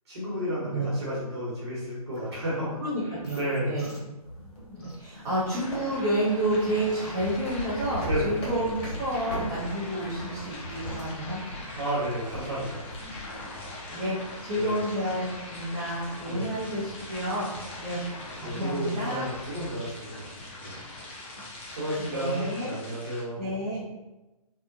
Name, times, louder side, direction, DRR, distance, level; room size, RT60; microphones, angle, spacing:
voice 1, 0.1-3.9 8.0-8.4 11.8-12.9 14.5-14.8 16.2-16.6 18.4-20.2 20.6-20.8 21.7-23.5, equal, 45° right, -7 dB, 1.1 m, -32 dB
sound 1, 2.1-13.6, left 2 dB, 75° left, 1.2 m, -51 dB
voice 2, 2.8-4.0 4.7-11.4 13.9-17.5 17.8-18.0 18.4-19.3 22.0-22.7 23.4-23.8, right 1 dB, 25° right, -10 dB, 0.6 m, -30 dB
sound 2, 4.2-13.4, equal, 35° left, 1.5 m, -39 dB
sound 3, 5.5-23.2, left 2 dB, 20° left, 0.3 m, -41 dB
2.7 x 2.1 x 2.5 m, 1.0 s
figure-of-eight pair, 140°, 19 cm